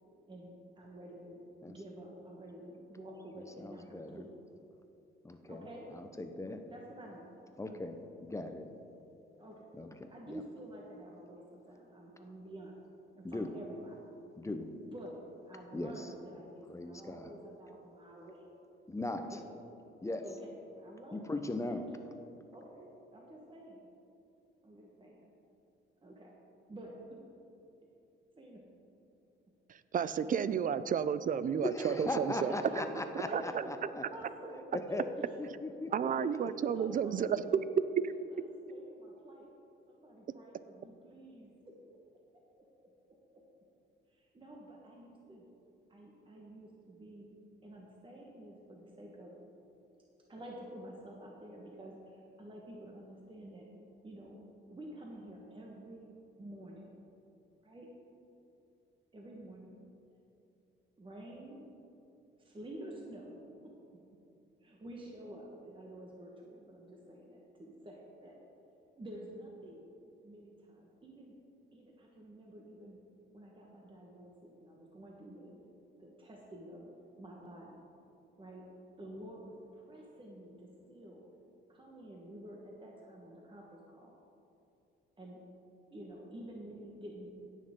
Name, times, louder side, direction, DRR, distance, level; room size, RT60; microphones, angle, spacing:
voice 1, 0.3-1.4 1.7-4.3 5.5-5.9 6.7-7.4 7.7-7.8 9.4-9.7 10.1-12.8 13.1-14.1 14.8-15.2 15.4-18.5 19.2-19.5 20.2-22.1 22.5-23.9 24.6-25.3 26.0-26.3 26.7-27.2 28.4-28.6 29.9-30.5 31.8-32.0 32.4-32.9 33.2-34.6 34.9-35.4 36.1-36.2 36.7-37.7 38.0-39.5 39.9-41.7 44.1-45.4 45.9-47.3 47.6-49.4 50.3-53.7 54.0-54.4 54.7-56.1 56.4-56.9 57.6-57.9 59.1-59.8 61.0-61.6 62.4-63.4 63.6-63.7 64.6-68.4 68.9-69.9 70.2-71.3 71.7-73.0 73.3-75.6 76.0-76.9 77.2-77.8 78.4-78.6 79.0-81.2 81.7-84.1 85.2-85.4 85.9-87.3, right 1 dB, 25° right, -2 dB, 1.3 m, -49 dB
voice 2, 3.6-4.2 5.2-5.6 5.9-6.6 7.6-8.0 8.2-8.7 9.8-10.4 13.2-13.5 14.4-14.7 15.7-16.1 16.7-17.3 18.9-19.4 20.0-20.2 21.1-21.8 31.6-34.0 34.7-35.0 35.4-36.1 36.4-36.5, left 2 dB, 15° left, 6 dB, 0.7 m, -38 dB
voice 3, 29.9-32.5 33.3-33.4 35.9-37.4, right 8 dB, 45° right, 14 dB, 0.5 m, -32 dB
17.0 x 6.4 x 3.7 m, 2.8 s
cardioid pair, 90°, 20 cm